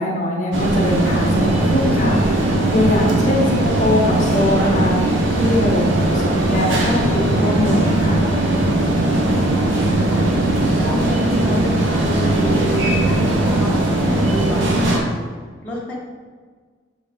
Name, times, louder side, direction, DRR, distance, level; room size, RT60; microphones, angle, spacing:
voice 1, 0.0-8.3, left 1 dB, 40° left, -3 dB, 1.0 m, -22 dB
sound 1, 0.5-15.0, right 1 dB, 80° right, 0.8 m, -18 dB
voice 2, 3.2-3.7 9.3-15.2 15.6-15.9, left 1 dB, 10° left, -7 dB, 1.0 m, -31 dB
7.2 x 3.7 x 3.5 m, 1.6 s
head